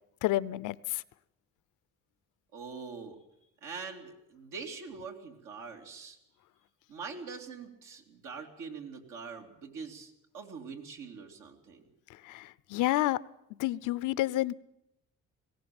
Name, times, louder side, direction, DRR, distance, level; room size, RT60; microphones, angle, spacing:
voice 1, 0.2-1.0 12.2-13.2 13.6-14.5, left 16 dB, 90° left, 19 dB, 0.6 m, -29 dB
voice 2, 2.5-3.2 3.6-6.2 6.9-11.8, right 5 dB, 90° right, 2 dB, 2.9 m, -43 dB
19.5 x 17.0 x 7.8 m, 0.81 s
cardioid pair, 90°, 30 cm